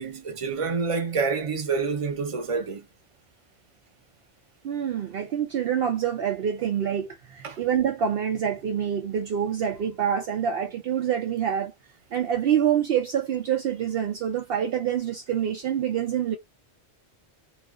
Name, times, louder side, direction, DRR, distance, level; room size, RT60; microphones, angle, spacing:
voice 1, 0.0-2.9 7.4-7.6, right 5 dB, 35° right, 0.8 m, -28 dB
voice 2, 4.6-11.7 12.1-16.4, right 9 dB, 65° right, 0.7 m, -26 dB
2.4 x 2.4 x 3.6 m
omnidirectional pair, 1.2 m